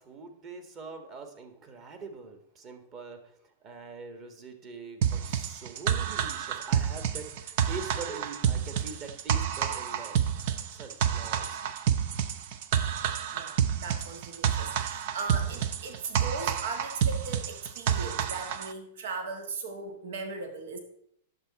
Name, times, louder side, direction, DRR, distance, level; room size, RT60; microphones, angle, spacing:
voice 1, 0.0-3.3 3.6-10.2 10.7-11.6, right 4 dB, 35° right, 6 dB, 1.6 m, -43 dB
sound 1, 5.0-18.7, right 8 dB, 60° right, 0.7 m, -29 dB
voice 2, 13.3-20.8, right 3 dB, 75° right, 6 dB, 1.5 m, -38 dB
10.0 x 7.0 x 4.1 m, 0.72 s
hypercardioid pair, 135°, 0 cm